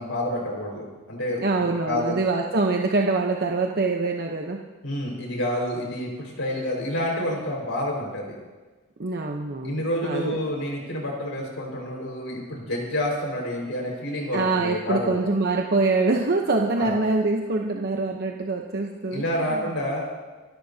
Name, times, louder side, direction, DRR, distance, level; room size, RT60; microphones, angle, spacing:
voice 1, 0.0-2.1 4.8-8.3 9.6-15.2 16.7-17.0 19.1-20.0, left 1 dB, 70° left, -1 dB, 5.0 m, -29 dB
voice 2, 1.4-4.6 9.0-10.4 14.3-19.2 19.5-19.7, right 3 dB, 50° right, 1 dB, 0.9 m, -24 dB
28.0 x 13.0 x 2.8 m, 1.3 s
head